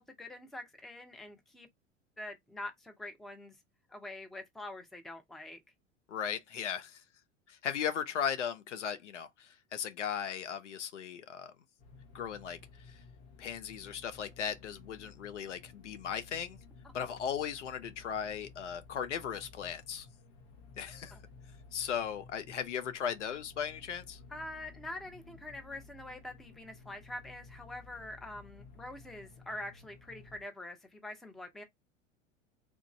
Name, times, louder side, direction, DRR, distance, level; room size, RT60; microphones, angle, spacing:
voice 1, 0.0-1.7 2.2-3.6 3.9-5.6 21.1-21.2 24.3-31.6, left 1 dB, ahead, 0.5 m, -45 dB
voice 2, 6.1-7.0 7.5-11.5 12.1-12.6 12.9-13.0 13.4-16.6 16.9-20.1 20.8-21.2 21.7-24.2, left 8 dB, 70° left, 0.7 m, -37 dB
sound 1, 11.8-30.4, left 4 dB, 50° left, 1.3 m, -55 dB
3.6 x 2.5 x 2.9 m
figure-of-eight pair, 80°, 38 cm